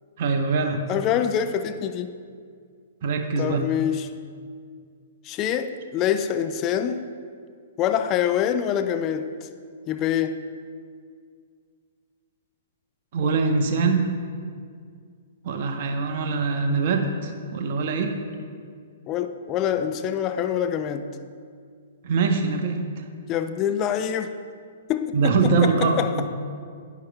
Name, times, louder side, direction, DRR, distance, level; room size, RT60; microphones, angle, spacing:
voice 1, 0.2-0.8 3.0-3.7 13.1-14.2 15.4-18.2 22.0-23.0 25.1-26.3, right 4 dB, 50° right, 4 dB, 1.0 m, -23 dB
voice 2, 0.9-2.1 3.4-4.1 5.2-7.1 7.8-9.5 9.9-10.4 19.1-21.1 23.3-24.3 24.9-26.3, left 9 dB, 30° left, 9 dB, 0.4 m, -25 dB
10.5 x 10.0 x 2.3 m, 2.1 s
figure-of-eight pair, 115°, 0 cm